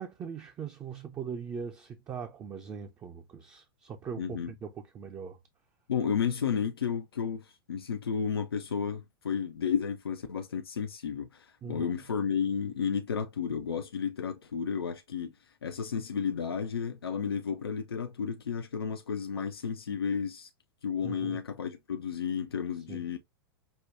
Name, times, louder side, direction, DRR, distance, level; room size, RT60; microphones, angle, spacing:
voice 1, 0.0-5.4 11.6-11.9 21.0-21.4 22.9-23.0, right 6 dB, 25° right, 0.5 m, -40 dB
voice 2, 4.2-4.5 5.9-15.3 15.6-20.5 20.8-23.2, left 6 dB, 85° left, 0.5 m, -32 dB
5.5 x 2.2 x 2.4 m
figure-of-eight pair, 95°, 12 cm